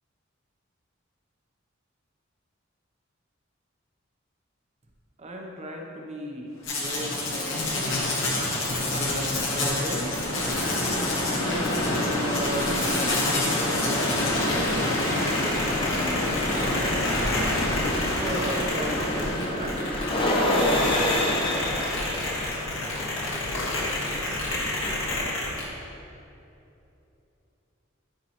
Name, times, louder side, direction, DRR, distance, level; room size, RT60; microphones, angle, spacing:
voice 1, 5.2-8.0 8.9-10.3 11.3-16.9 17.8-20.3, equal, 35° right, 1 dB, 0.7 m, -36 dB
sound 1, 6.6-19.4, left 1 dB, 90° left, 1.2 m, -30 dB
sound 2, 6.6-25.7, left 2 dB, 75° left, 1.5 m, -29 dB
sound 3, 10.3-25.2, left 1 dB, 25° left, 0.8 m, -30 dB
10.5 x 5.5 x 3.0 m, 2.8 s
head